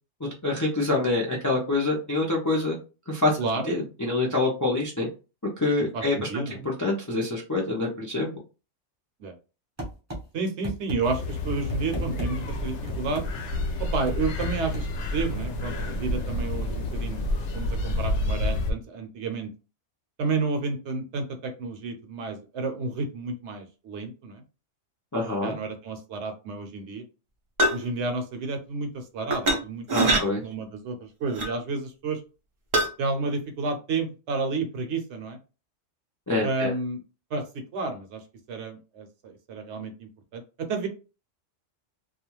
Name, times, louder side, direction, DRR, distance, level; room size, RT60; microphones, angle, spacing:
voice 1, 0.2-2.8 3.1-3.4 3.7-5.1 5.6-8.3 25.1-25.5 29.9-30.4 36.3-36.7, left 2 dB, 30° left, -2 dB, 0.3 m, -26 dB
voice 2, 5.9-6.6 9.2-9.3 10.3-13.3 13.8-17.3 17.5-19.5 20.2-24.4 25.4-27.0 27.7-32.2 33.0-35.4 36.4-37.0 37.3-38.2 38.5-40.9, right 3 dB, 70° right, 6 dB, 0.9 m, -31 dB
sound 1, 9.8-10.2 10.6-11.0 11.5-12.3 12.9-13.3 14.1-14.9, right 1 dB, 15° right, 0.8 m, -32 dB
london waterloo park, 11.0-18.7, left 1 dB, 75° left, 0.9 m, -29 dB
sound 2, 27.6-27.9 29.3-29.6 29.9-30.2 31.3-31.5 32.7-32.9, right 1 dB, 45° right, 0.4 m, -22 dB
2.4 x 2.3 x 3.0 m, 0.32 s
omnidirectional pair, 1.3 m